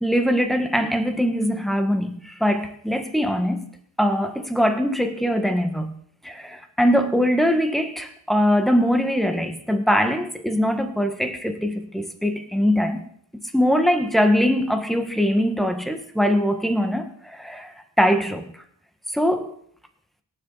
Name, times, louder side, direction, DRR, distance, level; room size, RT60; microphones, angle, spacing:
voice 1, 0.0-3.7 4.0-5.9 6.2-13.0 13.5-18.4 19.1-19.5, equal, ahead, 1.5 m, -22 dB
18.0 x 7.3 x 4.1 m
cardioid pair, 70°, 45 cm